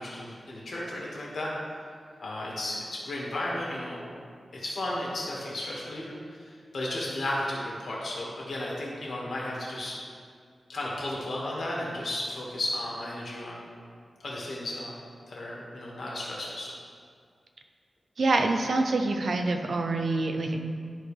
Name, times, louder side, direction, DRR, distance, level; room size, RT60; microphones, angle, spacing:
voice 1, 0.0-1.5 2.2-4.1 4.5-10.0 10.7-13.7 14.2-15.0 15.3-16.7, left 1 dB, 75° left, -5 dB, 2.0 m, -34 dB
voice 2, 18.2-20.7, right 2 dB, 70° right, 4 dB, 0.6 m, -26 dB
12.5 x 4.3 x 3.4 m, 2.1 s
wide cardioid pair, 90°, 0 cm